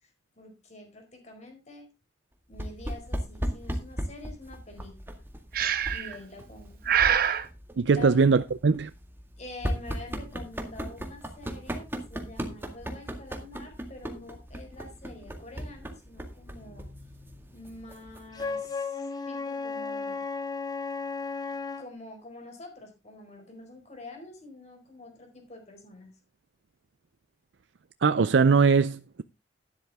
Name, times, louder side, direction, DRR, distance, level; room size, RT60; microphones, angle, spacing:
voice 1, 0.0-1.9 2.5-4.9 5.9-6.8 7.9-8.2 9.4-16.9 17.5-20.2 21.8-26.1, left 2 dB, 40° left, 4.6 m, -46 dB
sound 1, 2.5-18.7, equal, 10° right, 1.9 m, -38 dB
Breathing, 5.5-6.2 6.9-7.5, right 8 dB, 55° right, 1.0 m, -24 dB
voice 2, 7.8-8.9 28.0-29.2, right 5 dB, 75° right, 0.5 m, -21 dB
Wind instrument woodwind instrument, 18.3-21.9, left 4 dB, 20° left, 1.1 m, -34 dB
12.0 x 10.5 x 3.5 m
head